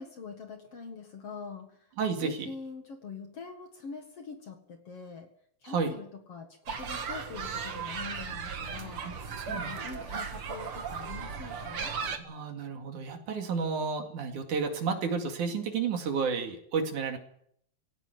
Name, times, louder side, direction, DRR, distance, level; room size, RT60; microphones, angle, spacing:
voice 1, 0.0-1.9 2.2-5.3 5.6-12.0, left 5 dB, 50° left, 6 dB, 2.3 m, -44 dB
voice 2, 2.0-2.5 5.6-5.9 9.0-9.8 12.3-17.2, right 5 dB, 60° right, 5 dB, 3.6 m, -32 dB
sound 1, 6.7-12.2, right 6 dB, 45° right, 2.3 m, -36 dB
17.5 x 17.0 x 9.5 m, 0.68 s
omnidirectional pair, 4.1 m